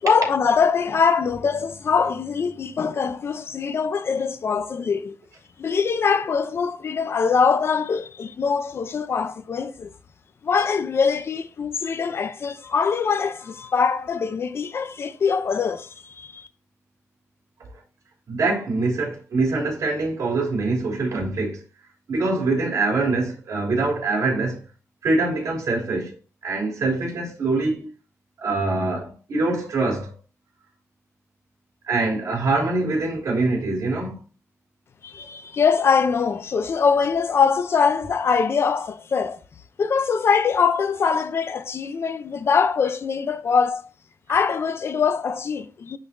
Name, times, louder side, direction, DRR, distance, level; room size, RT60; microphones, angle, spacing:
voice 1, 0.0-5.2 5.6-9.9 10.4-16.5 35.0-39.4 39.8-43.8 44.3-46.0, left 6 dB, 50° left, 0.5 m, -23 dB
voice 2, 18.3-21.6 22.1-24.6 25.0-26.1 26.4-27.9 28.4-30.1 31.8-34.2, right 3 dB, 70° right, 3.2 m, -24 dB
11.5 x 3.9 x 2.6 m
wide cardioid pair, 170°, 6 cm